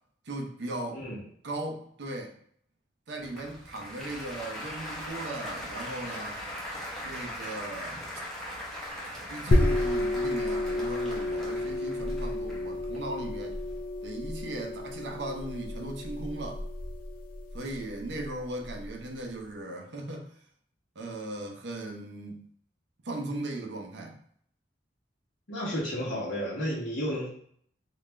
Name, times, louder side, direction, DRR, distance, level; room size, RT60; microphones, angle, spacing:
voice 1, 0.3-1.1 1.4-2.3 3.1-6.4 7.0-8.0 9.3-13.6 14.0-16.6 17.5-20.3 21.0-22.4 23.0-24.2, right 2 dB, 65° right, 0.7 m, -37 dB
Applause, 3.2-13.8, equal, ahead, 0.8 m, -40 dB
sound 1, 9.5-18.9, left 1 dB, 50° left, 0.5 m, -31 dB
voice 2, 25.5-27.3, equal, 85° left, 1.1 m, -32 dB
3.9 x 2.5 x 3.2 m
head